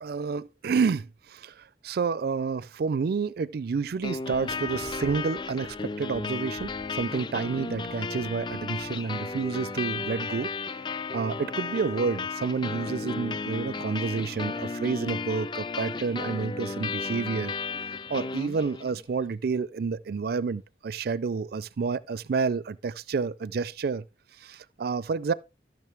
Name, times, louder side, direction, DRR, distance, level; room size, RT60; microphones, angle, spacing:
voice 1, 0.0-10.5 11.1-17.5 18.1-24.0 24.4-25.3, right 5 dB, 60° right, 0.4 m, -29 dB
sound 1, 3.7-6.2 6.6-8.9, equal, 90° left, 3.5 m, -48 dB
sound 2, 4.0-19.0, left 4 dB, 25° left, 0.4 m, -34 dB
14.0 x 6.3 x 3.4 m
head